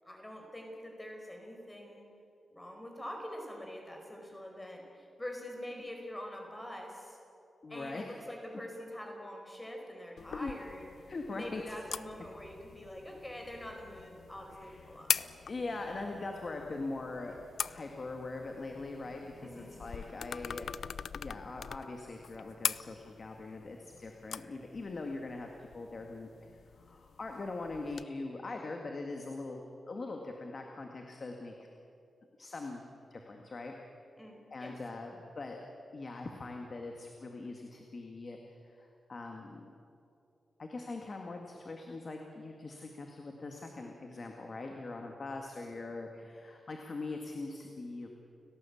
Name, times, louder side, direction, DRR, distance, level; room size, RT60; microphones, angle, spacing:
voice 1, 0.0-2.0 2.5-7.2 7.7-10.9 11.3-15.2 19.4-19.8 34.2-34.8, left 1 dB, 10° left, 2 dB, 4.7 m, -45 dB
voice 2, 7.6-8.2 10.3-10.5 11.1-11.8 14.5-17.4 17.6-20.7 21.1-26.5 26.8-31.5 32.4-32.8 33.1-33.7 34.5-35.6 35.9-39.7 40.6-48.1, left 3 dB, 35° left, 2 dB, 2.0 m, -42 dB
sound 1, 10.2-28.0, left 7 dB, 70° left, 0.5 m, -42 dB
30.0 x 18.0 x 8.6 m, 2.7 s
wide cardioid pair, 175°, 0 cm